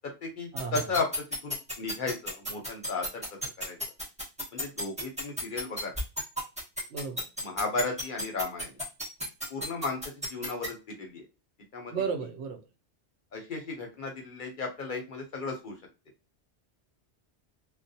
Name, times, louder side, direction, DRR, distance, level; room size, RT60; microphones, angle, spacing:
voice 1, 0.0-3.2 3.6-3.8 4.5-5.9 7.4-8.7 9.5-11.2 11.7-11.9 13.3-15.8, left 3 dB, 55° left, 0.7 m, -34 dB
voice 2, 0.5-0.8 6.9-7.2 11.9-12.6, right 6 dB, 75° right, 0.9 m, -33 dB
sound 1, 0.6-10.7, equal, 5° right, 0.9 m, -32 dB
2.4 x 2.0 x 2.6 m
omnidirectional pair, 1.2 m